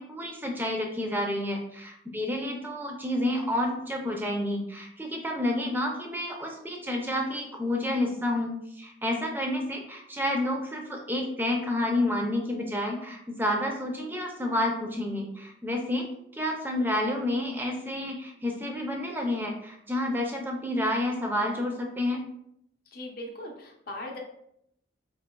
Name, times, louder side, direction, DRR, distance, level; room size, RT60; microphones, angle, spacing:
voice 1, 0.0-16.1 16.3-22.2, left 1 dB, 10° right, 1 dB, 0.4 m, -29 dB
voice 2, 22.9-24.2, left 1 dB, 45° left, 1 dB, 0.6 m, -39 dB
3.8 x 2.7 x 2.2 m, 0.73 s
head